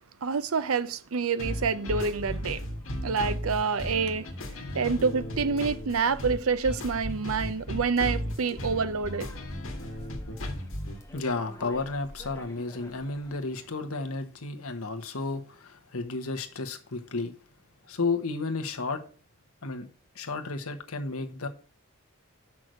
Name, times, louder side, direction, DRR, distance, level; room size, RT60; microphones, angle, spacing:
voice 1, 0.2-2.6 3.0-4.3 4.7-9.3, right 5 dB, 75° right, 0.6 m, -27 dB
sound 1, 1.4-11.0, equal, 65° left, 1.8 m, -35 dB
sound 2, 3.6-13.7, left 1 dB, 15° left, 1.3 m, -50 dB
voice 2, 11.1-17.3 17.9-19.0 19.6-19.9 20.1-21.5, left 3 dB, 85° left, 1.2 m, -32 dB
6.2 x 6.0 x 6.5 m
head